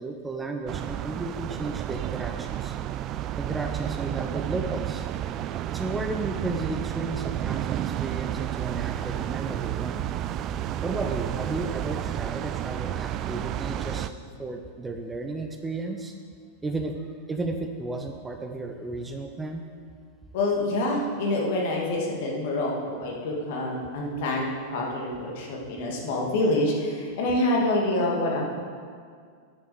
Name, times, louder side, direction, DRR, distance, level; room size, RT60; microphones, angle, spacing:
voice 1, 0.0-2.8 3.4-5.1 5.7-10.0 10.8-14.1 14.4-16.1 16.6-19.6, right 2 dB, 10° right, 4 dB, 0.7 m, -33 dB
sound 1, 0.7-14.1, right 11 dB, 35° right, 0.3 m, -31 dB
voice 2, 20.3-28.4, left 1 dB, 50° left, -1 dB, 2.2 m, -26 dB
9.3 x 6.9 x 6.5 m, 2.2 s
figure-of-eight pair, 90°, 0 cm